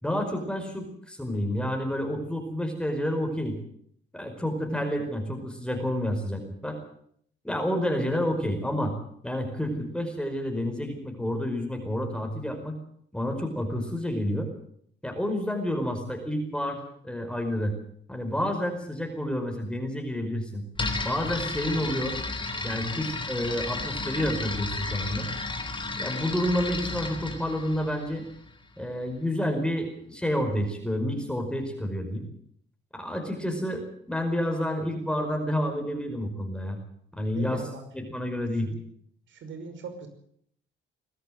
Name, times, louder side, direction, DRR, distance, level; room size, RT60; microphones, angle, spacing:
voice 1, 0.0-3.6 4.1-6.8 7.4-8.9 9.2-12.8 13.1-14.5 15.0-17.7 18.1-20.6 21.0-22.2 22.6-25.3 26.0-28.2 28.8-32.3 32.9-36.8 37.2-37.6 37.9-38.7, equal, 5° left, 3 dB, 5.0 m, -29 dB
sound 1, 20.7-28.6, left 3 dB, 25° left, 3.6 m, -33 dB
voice 2, 37.3-37.9 38.6-38.8 39.3-40.1, right 5 dB, 70° right, 7 dB, 5.6 m, -40 dB
22.0 x 13.5 x 9.3 m, 0.66 s
cardioid pair, 90°, 20 cm